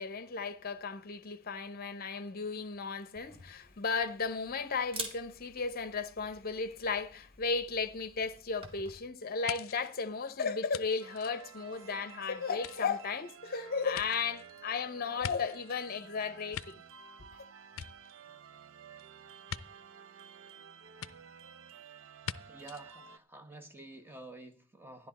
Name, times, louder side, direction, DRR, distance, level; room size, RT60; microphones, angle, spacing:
voice 1, 0.0-16.8 17.3-17.4, left 5 dB, 45° left, 0.8 m, -35 dB
Camera, 3.1-9.0, right 1 dB, 25° right, 2.0 m, -48 dB
sound 1, 9.5-12.1 12.5-15.9 16.3-17.3 17.6-18.6 19.5-19.6 21.0-21.1 22.2-22.4 22.7-22.8, left 8 dB, 70° left, 0.5 m, -44 dB
sound 2, 11.0-23.2, right 7 dB, 65° right, 0.6 m, -53 dB
voice 2, 22.5-25.1, right 2 dB, 10° right, 1.2 m, -49 dB
13.0 x 10.5 x 4.2 m
head